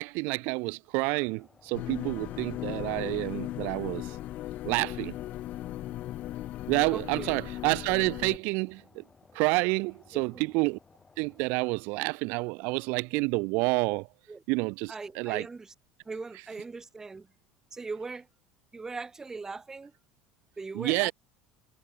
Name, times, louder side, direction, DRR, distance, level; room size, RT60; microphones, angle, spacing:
voice 1, 0.0-4.2 4.6-5.1 6.7-9.0 9.3-10.8 11.2-14.1 14.5-15.5 20.7-21.1, right 28 dB, 70° right, 0.3 m, -29 dB
sound 1, 1.2-11.5, left 4 dB, 20° left, 2.4 m, -60 dB
sound 2, 1.7-8.4, left 14 dB, 50° left, 0.4 m, -37 dB
voice 2, 6.9-7.4 10.1-10.4 14.3-14.4 14.9-15.7 16.0-17.3 17.7-18.3 18.7-19.9 20.6-21.1, right 4 dB, 15° right, 0.9 m, -40 dB
cardioid pair, 130°, 3 cm